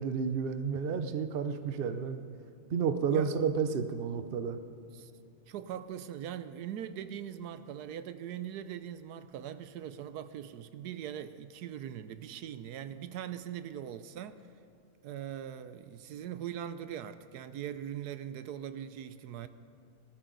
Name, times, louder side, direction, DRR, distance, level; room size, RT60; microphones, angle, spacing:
voice 1, 0.0-2.2 2.7-4.6, right 6 dB, 45° right, 0.8 m, -31 dB
voice 2, 5.5-14.4 15.0-19.5, right 10 dB, 85° right, 1.2 m, -41 dB
19.0 x 13.5 x 3.9 m
omnidirectional pair, 1.6 m